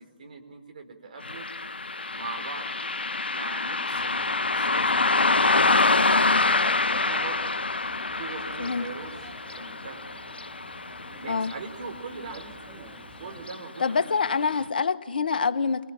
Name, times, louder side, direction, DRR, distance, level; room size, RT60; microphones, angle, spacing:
voice 1, 0.0-1.5 2.1-2.7 3.3-7.5 8.1-10.0 11.2-14.4, right 4 dB, 55° right, 5 dB, 4.5 m, -41 dB
Car passing by, 1.2-12.0 12.3-12.4 13.4-13.6 14.0-14.1 14.6-14.7, left 3 dB, 80° left, 0.7 m, -26 dB
sound 1, 3.9-13.5, right 4 dB, 20° right, 2.8 m, -49 dB
voice 2, 13.8-15.9, left 5 dB, 65° left, 11 dB, 1.2 m, -26 dB
24.5 x 22.0 x 9.0 m, 1.3 s
figure-of-eight pair, 140°, 5 cm